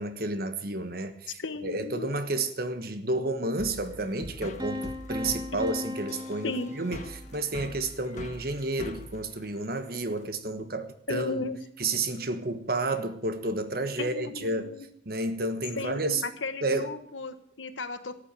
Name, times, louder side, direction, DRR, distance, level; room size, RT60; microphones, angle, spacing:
voice 1, 0.0-11.4 11.8-14.7 15.0-16.2 16.6-16.9, right 2 dB, 50° right, 1.3 m, -31 dB
voice 2, 1.4-2.1 5.5-5.6 6.4-6.7 11.1-11.6 14.0-14.8 15.8-18.2, left 3 dB, 85° left, 1.3 m, -35 dB
sound 1, 3.6-10.2, left 1 dB, 40° left, 1.4 m, -44 dB
Piano, 4.6-7.5, left 1 dB, 20° right, 1.6 m, -37 dB
13.0 x 8.6 x 8.9 m
head